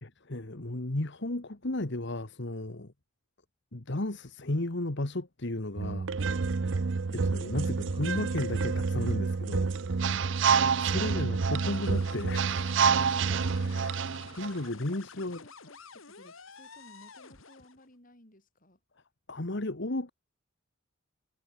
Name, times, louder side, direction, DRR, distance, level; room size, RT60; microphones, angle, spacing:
voice 1, 0.0-2.9 3.7-6.1 7.1-9.7 10.8-12.7 13.8-14.0 14.4-15.4 19.3-20.1, left 1 dB, 55° left, 1.5 m, -34 dB
sound 1, 5.8-14.5, right 5 dB, 60° right, 0.6 m, -28 dB
voice 2, 10.0-10.3 13.2-13.9 14.6-18.8, left 1 dB, 40° left, 5.9 m, -55 dB
sound 2, 11.3-17.9, left 5 dB, 70° left, 2.7 m, -50 dB
head